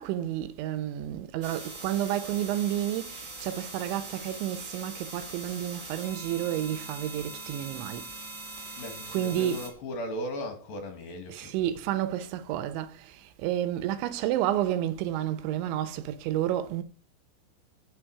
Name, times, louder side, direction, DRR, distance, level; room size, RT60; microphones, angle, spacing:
voice 1, 0.0-8.1 8.6-8.8 9.1-9.6 11.3-16.8, right 12 dB, 90° right, 3.3 m, -30 dB
sound 1, 1.4-9.7, right 3 dB, 25° right, 4.0 m, -42 dB
voice 2, 8.8-11.6, equal, 60° left, 3.6 m, -37 dB
15.0 x 7.3 x 4.8 m
omnidirectional pair, 5.2 m